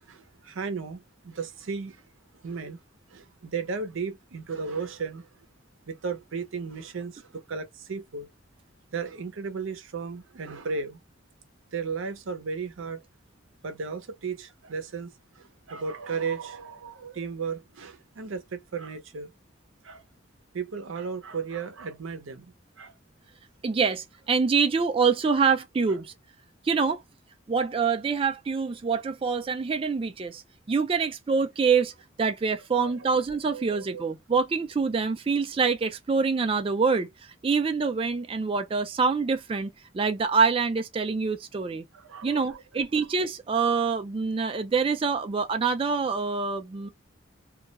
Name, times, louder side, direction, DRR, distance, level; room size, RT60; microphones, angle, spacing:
voice 1, 0.0-2.1 2.3-2.8 3.1-5.3 5.9-8.3 8.9-11.0 11.7-13.0 13.6-19.3 19.8-20.0 20.5-22.9 32.8-33.1 33.5-34.0 41.9-42.8, right 5 dB, 85° right, 0.6 m, -35 dB
voice 2, 23.6-26.1 26.6-27.0 27.5-30.4 30.7-31.9 32.2-41.8 42.2-46.9, right 5 dB, 30° right, 0.3 m, -25 dB
2.3 x 2.0 x 2.7 m
head